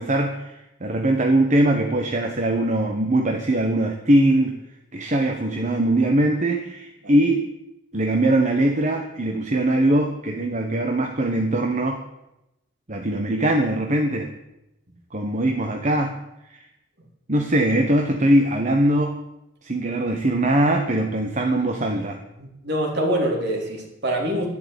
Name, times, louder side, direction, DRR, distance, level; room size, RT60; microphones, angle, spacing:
voice 1, 0.0-4.6 4.9-7.5 7.9-12.0 12.9-14.3 15.1-16.2 16.5-16.6 17.3-19.2 19.6-22.2, right 1 dB, 40° right, 3 dB, 1.3 m, -21 dB
voice 2, 22.4-24.5, right 1 dB, 60° right, 2 dB, 3.4 m, -25 dB
11.5 x 10.5 x 8.7 m, 0.90 s
head